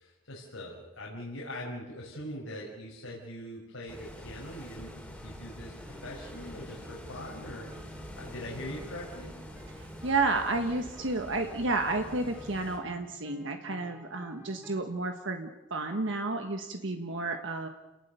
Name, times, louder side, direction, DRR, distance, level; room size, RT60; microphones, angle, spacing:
voice 1, 0.0-5.7 6.0-9.3, left 1 dB, 90° left, -3 dB, 5.5 m, -42 dB
sound 1, 3.9-12.8, equal, 5° left, 3.7 m, -46 dB
sound 2, 5.2-14.8, equal, 10° right, 2.4 m, -52 dB
voice 2, 9.7-17.7, right 3 dB, 65° right, 5 dB, 1.5 m, -31 dB
29.5 x 19.0 x 6.9 m, 1.1 s
head